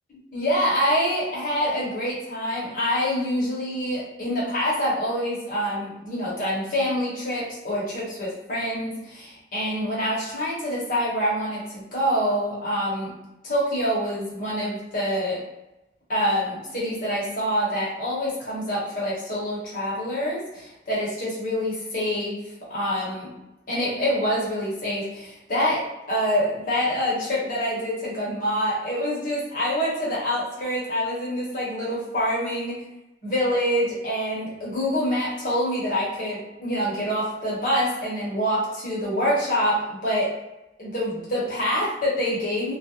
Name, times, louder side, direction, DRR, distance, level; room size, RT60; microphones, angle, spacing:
voice 1, 0.3-13.1 13.4-15.4 16.1-22.4 22.7-23.3 23.7-32.8 33.2-40.3 40.8-42.7, equal, 45° left, -6 dB, 0.9 m, -26 dB
2.3 x 2.1 x 2.7 m, 0.95 s
head